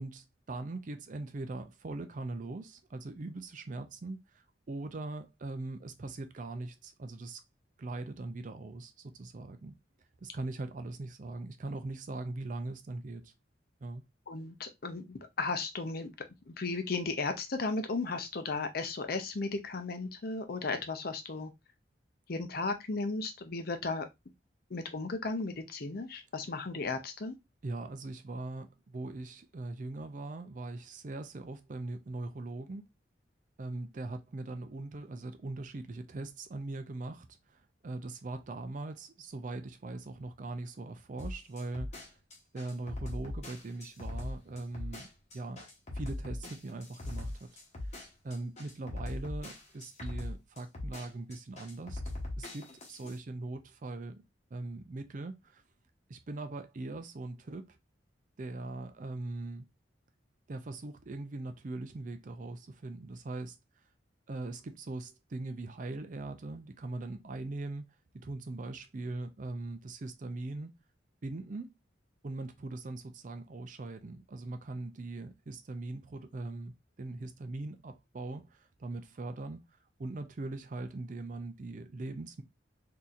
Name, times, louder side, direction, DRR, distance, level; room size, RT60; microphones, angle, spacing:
voice 1, 0.0-7.4 7.8-9.8 10.2-13.3 13.8-14.0 27.6-32.9 33.6-42.1 42.5-45.1 45.3-45.6 45.9-47.5 47.8-48.0 48.2-52.0 52.4-54.2 54.5-55.6 56.1-57.8 58.4-59.7 60.5-63.6 64.3-67.8 68.1-70.7 71.2-71.7 72.2-79.6 80.0-82.4, right 2 dB, 45° right, 0.4 m, -41 dB
voice 2, 14.3-16.1 16.5-21.5 22.3-24.1 24.7-27.4, left 3 dB, 55° left, 0.6 m, -35 dB
sound 1, 41.2-53.2, left 1 dB, 35° left, 1.1 m, -40 dB
4.0 x 2.8 x 2.4 m
head